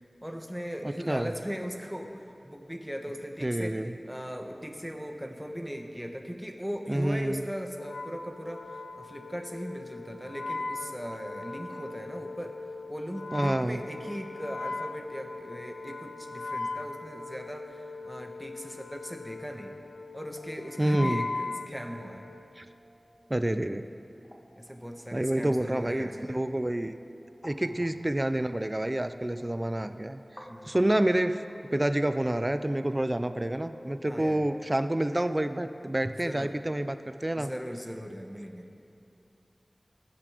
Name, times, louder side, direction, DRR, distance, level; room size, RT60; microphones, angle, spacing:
voice 1, 0.2-12.6 12.9-19.7 20.1-22.2 24.6-26.3 30.5-30.9 34.1-34.4 36.2-36.5 37.3-38.7, equal, 5° right, 4 dB, 1.4 m, -39 dB
voice 2, 0.8-1.3 3.4-4.0 6.9-7.4 13.3-13.8 20.8-21.2 22.6-22.7 23.3-23.9 25.1-26.9 27.4-30.2 30.7-31.4 31.7-37.5, right 1 dB, 30° right, 10 dB, 0.5 m, -28 dB
Wind instrument woodwind instrument, 7.8-22.5, left 3 dB, 85° left, 0.6 m, -39 dB
sound 1, 16.0-34.6, equal, 15° left, 1.9 m, -55 dB
19.5 x 7.6 x 5.1 m, 2.7 s
wide cardioid pair, 40°, 0 cm